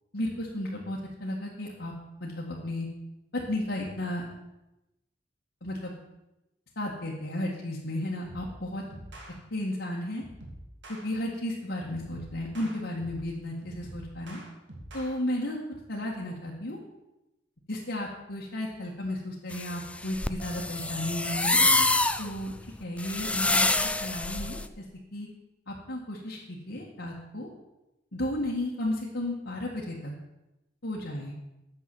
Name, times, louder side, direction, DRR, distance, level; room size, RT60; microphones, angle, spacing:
voice 1, 0.1-1.9 2.2-2.9 3.3-4.2 5.6-5.9 6.8-8.8 9.5-10.2 10.9-14.4 14.9-15.6 15.9-16.8 17.7-21.6 22.2-22.5 22.8-23.7 24.0-24.8 25.1-25.3 25.7-27.5 28.1-30.1 30.8-31.4, left 1 dB, 70° left, -5 dB, 1.9 m, -33 dB
sound 1, 8.3-8.6 8.9-9.3 10.2-11.1 11.9-13.3 13.6-15.1, right 1 dB, 70° right, 2.5 m, -45 dB
sound 2, 19.5-24.7, left 2 dB, 5° left, 0.4 m, -26 dB
9.6 x 7.0 x 7.2 m, 0.95 s
head